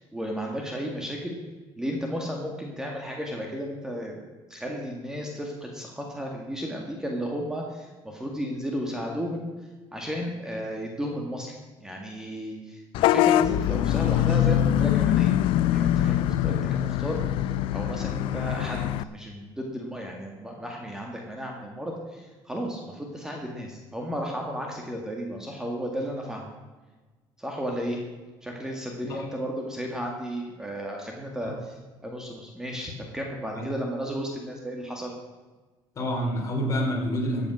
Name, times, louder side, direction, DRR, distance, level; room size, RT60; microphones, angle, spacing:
voice 1, 0.0-1.4 1.8-4.2 4.5-9.5 9.9-15.4 15.7-17.2 17.7-26.5 27.4-28.0 28.4-35.1, equal, 5° right, 0 dB, 2.0 m, -34 dB
Vehicle horn car horn honking / Bus, 12.9-19.0, left 12 dB, 70° left, 0.5 m, -23 dB
voice 2, 36.0-37.5, equal, 35° left, 0 dB, 3.8 m, -28 dB
14.5 x 8.6 x 6.2 m, 1.3 s
cardioid pair, 130°, 9 cm